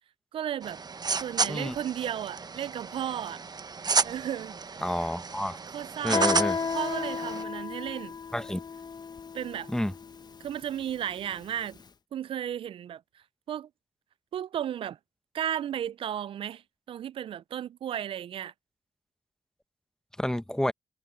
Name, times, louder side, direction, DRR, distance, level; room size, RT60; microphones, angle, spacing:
voice 1, 0.3-0.8 1.2-3.4 4.0-4.6 5.7-6.3 6.7-8.2 9.3-9.7 10.4-11.8 12.1-13.7 14.3-15.0 15.3-16.6 16.9-18.5, right 10 dB, 65° right, 0.4 m, -34 dB
sound 1, 0.6-7.4, right 5 dB, 45° right, 1.2 m, -32 dB
voice 2, 4.8-5.6 6.0-6.6 8.3-8.6 9.7-9.9 20.2-20.7, left 1 dB, 5° left, 1.2 m, -29 dB
Guitar, 6.1-11.6, left 5 dB, 45° left, 1.1 m, -34 dB
supercardioid pair, 45°, 10 cm